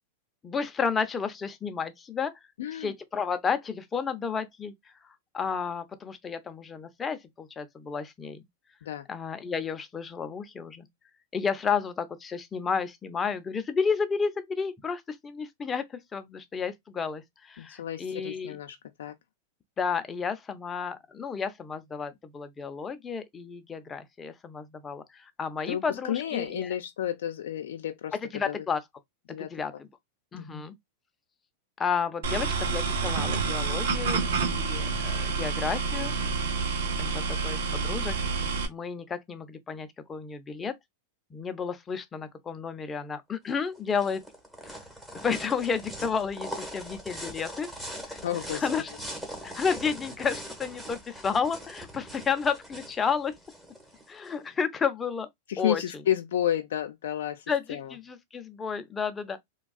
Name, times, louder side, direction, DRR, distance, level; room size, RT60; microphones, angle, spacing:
voice 1, 0.4-2.3 2.7-4.7 5.3-8.4 9.1-10.9 11.3-18.6 19.8-26.7 28.3-28.8 29.4-29.9 30.3-30.7 31.8-36.1 37.0-40.7 41.3-44.2 44.6-44.8 45.2-47.7 48.1-48.2 48.5-48.9 49.4-53.3 54.1-55.3 55.6-55.8 57.5-59.4, left 6 dB, 20° left, 0.6 m, -32 dB
voice 2, 2.6-2.9 8.8-9.1 17.6-19.1 25.7-25.8 26.1-28.2 28.5-28.6 29.3-29.5 30.3-30.6 48.2-48.7 55.5-57.9, left 10 dB, 75° left, 0.5 m, -31 dB
sound 1, 32.2-38.7, right 4 dB, 75° right, 0.8 m, -28 dB
sound 2, 43.5-54.3, equal, 5° right, 1.1 m, -41 dB
3.4 x 2.3 x 2.3 m
hypercardioid pair, 120°, 0 cm